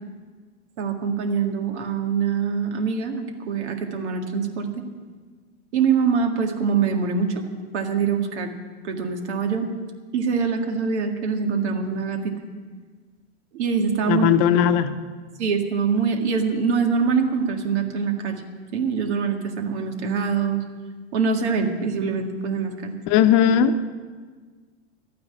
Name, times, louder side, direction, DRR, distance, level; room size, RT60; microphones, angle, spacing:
voice 1, 0.8-4.8 5.7-7.4 7.7-8.5 8.8-9.7 10.1-12.3 13.5-14.3 15.4-18.4 18.7-20.6 21.1-22.9, right 5 dB, 80° right, 3 dB, 2.0 m, -24 dB
voice 2, 14.1-15.0 23.1-23.8, left 9 dB, 55° left, 10 dB, 1.0 m, -18 dB
12.5 x 9.5 x 8.8 m, 1.5 s
hypercardioid pair, 105°, 33 cm